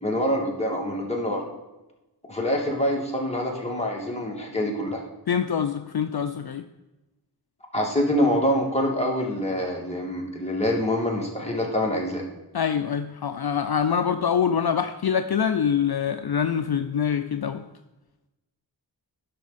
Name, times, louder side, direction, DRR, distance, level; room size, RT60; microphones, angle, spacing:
voice 1, 0.0-1.4 2.3-5.0 7.7-12.2, left 1 dB, 15° left, -2 dB, 2.4 m, -25 dB
voice 2, 5.3-6.6 12.5-17.6, left 7 dB, 65° left, 8 dB, 0.5 m, -25 dB
11.0 x 6.3 x 4.2 m, 1.0 s
wide cardioid pair, 50°, 41 cm